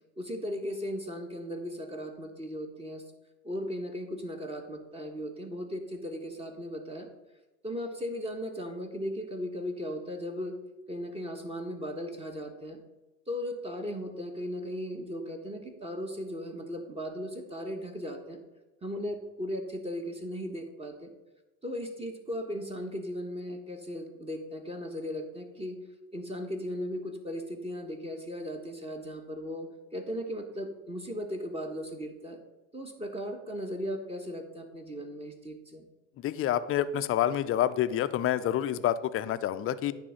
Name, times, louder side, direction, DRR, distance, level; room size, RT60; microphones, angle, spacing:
voice 1, 0.2-3.0 3.4-7.1 7.6-10.5 10.9-12.8 13.3-18.4 18.8-21.1 21.6-25.8 26.1-32.4 32.7-35.8, equal, 15° right, 4 dB, 1.2 m, -37 dB
voice 2, 36.2-39.9, left 11 dB, 35° left, 13 dB, 0.5 m, -28 dB
9.8 x 3.5 x 6.4 m, 1.1 s
supercardioid pair, 90°, 38 cm